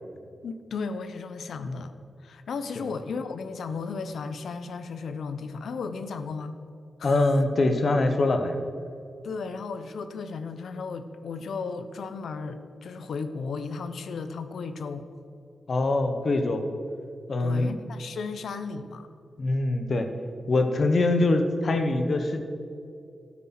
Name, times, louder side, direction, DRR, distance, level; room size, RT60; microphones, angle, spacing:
voice 1, 0.4-1.9 2.2-6.6 7.0-7.3 9.2-15.1 17.4-19.1, left 4 dB, 80° left, 10 dB, 0.8 m, -35 dB
voice 2, 7.0-8.6 15.7-16.6 17.3-17.7 19.4-20.1 20.5-22.4, left 2 dB, 45° left, 6 dB, 1.2 m, -23 dB
12.5 x 8.8 x 6.0 m, 2.5 s
wide cardioid pair, 145°, 0 cm